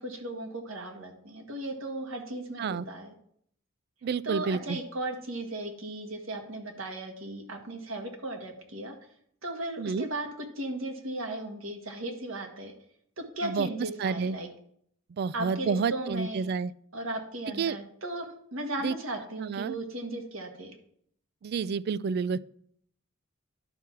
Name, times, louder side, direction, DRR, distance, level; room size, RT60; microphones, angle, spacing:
voice 1, 0.0-3.1 4.2-8.9 9.4-10.3 10.5-12.7 13.2-14.5 15.3-16.5 16.9-20.7, right 1 dB, 75° right, 3 dB, 1.7 m, -36 dB
voice 2, 4.0-4.8 9.8-10.1 13.4-13.7 14.0-14.4 15.1-16.7 17.6-17.8 18.8-19.0 19.4-19.8 21.4-22.4, right 5 dB, 50° right, 19 dB, 0.3 m, -29 dB
11.0 x 5.8 x 4.7 m, 0.66 s
head